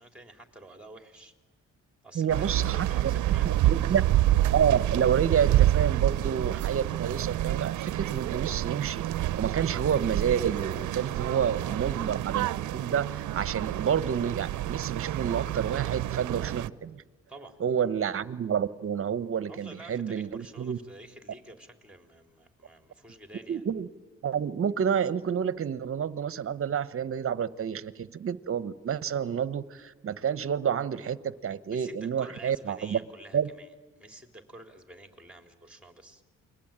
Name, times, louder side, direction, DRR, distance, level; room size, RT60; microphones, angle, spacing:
voice 1, 0.0-1.3 2.0-4.0 11.6-11.9 17.3-17.6 19.5-23.6 31.7-33.7 34.0-36.2, right 2 dB, 5° right, 5 dB, 3.7 m, -49 dB
voice 2, 2.1-3.1 3.4-4.0 4.5-9.0 9.3-12.5 12.7-17.0 17.6-20.8 23.5-23.9 24.2-33.0 33.3-33.5, right 8 dB, 45° right, 15 dB, 1.1 m, -29 dB
sound 1, 2.3-16.7, right 14 dB, 75° right, 0.8 m, -28 dB
29.0 x 22.0 x 8.9 m, 1.4 s
cardioid pair, 90°, 30 cm